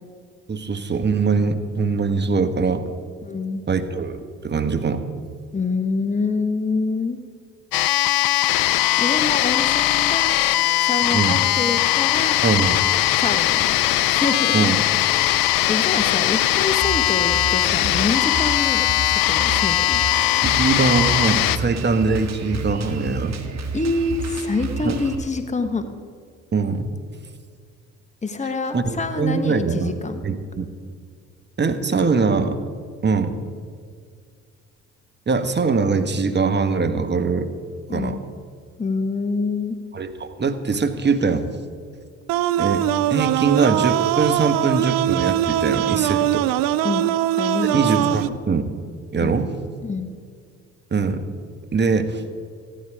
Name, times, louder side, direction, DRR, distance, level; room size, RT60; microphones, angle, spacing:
voice 1, 0.5-2.8 3.7-5.0 11.1-11.4 12.4-12.8 14.5-14.8 20.4-23.4 24.8-25.0 26.5-26.9 28.7-29.9 30.2-30.7 31.6-32.5 33.0-33.4 35.3-37.5 37.9-38.2 39.9-41.5 42.6-42.8 43.1-46.5 47.7-48.6 49.1-49.5 50.9-51.3 51.7-52.2, right 4 dB, 30° right, 8 dB, 1.4 m, -22 dB
voice 2, 3.2-3.6 5.5-7.2 9.0-10.3 10.8-12.4 13.2-14.7 15.1-20.0 23.7-25.9 28.2-30.2 37.9-38.2 38.8-39.8 46.8-47.1 47.4-48.4 49.2-49.4 49.8-50.1, left 3 dB, 20° left, 8 dB, 1.3 m, -26 dB
sound 1, 7.7-21.6, left 15 dB, 70° left, 0.7 m, -20 dB
Drum kit, 16.8-25.1, right 4 dB, 50° right, 1.9 m, -31 dB
sound 2, 42.3-48.3, right 13 dB, 75° right, 0.6 m, -21 dB
14.5 x 12.5 x 4.9 m, 2.1 s
hypercardioid pair, 55°, 35 cm